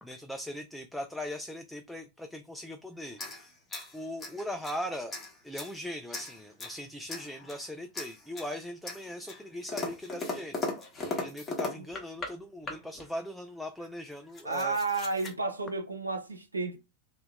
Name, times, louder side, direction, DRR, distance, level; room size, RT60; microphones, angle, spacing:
voice 1, 0.0-3.5 3.9-5.1 5.4-10.6 11.1-14.8, equal, ahead, 0.3 m, -39 dB
sound 1, 3.1-4.8 5.1-5.8 6.1-6.8 7.1-7.7 8.0-8.5 8.9-12.3 12.6-13.1 13.8-13.9 14.1-15.3, left 3 dB, 20° left, 1.0 m, -38 dB
voice 2, 14.4-16.8, right 3 dB, 80° right, 0.6 m, -31 dB
2.7 x 2.0 x 3.3 m
figure-of-eight pair, 90°, 0 cm